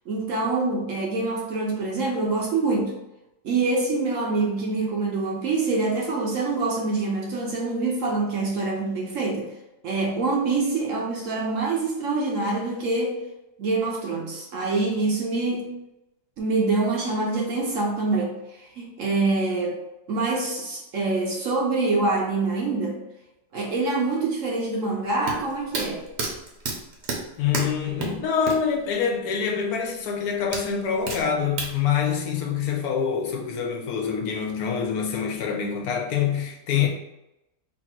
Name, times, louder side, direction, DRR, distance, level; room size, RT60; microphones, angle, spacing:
voice 1, 0.1-2.9 3.4-9.5 9.8-13.2 13.6-15.7 16.4-18.3 18.8-19.8 20.1-23.0 23.5-26.0, right 3 dB, 60° right, -1 dB, 1.0 m, -25 dB
sound 1, 25.1-28.7 29.0-29.1 30.5-31.7, right 3 dB, 85° right, 1.4 m, -30 dB
voice 2, 27.4-36.9, left 7 dB, 70° left, 2 dB, 1.1 m, -25 dB
3.2 x 2.5 x 4.3 m, 0.90 s
omnidirectional pair, 1.7 m